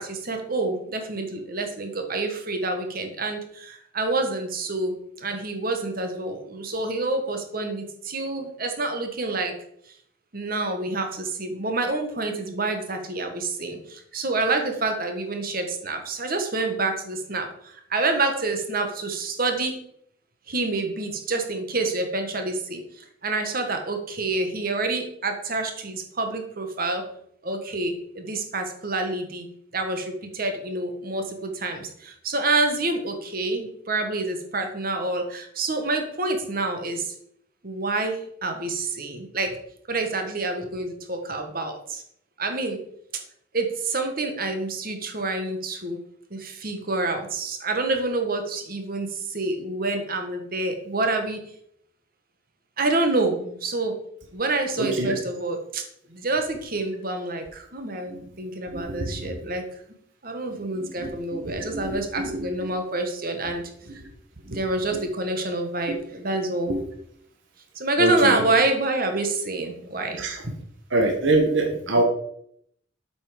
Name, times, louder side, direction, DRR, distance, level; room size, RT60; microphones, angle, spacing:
voice 1, 0.0-9.5 10.3-19.8 20.5-27.0 27.4-29.5 29.7-37.1 37.6-39.6 39.9-42.0 42.4-42.8 43.5-46.0 46.3-51.4 52.8-54.0 54.3-55.8 56.1-59.6 60.2-63.6 64.4-66.7 67.7-70.5, right 2 dB, 45° right, 5 dB, 1.5 m, -27 dB
voice 2, 54.8-55.2 58.1-58.2 58.7-59.4 60.7-62.7 63.9-64.1 64.5-64.6 64.9-65.0 65.9-66.0 66.7-66.8 68.0-68.4 70.2-70.4 70.9-72.0, right 2 dB, 70° right, 4 dB, 1.4 m, -26 dB
8.0 x 5.8 x 5.1 m, 0.69 s
head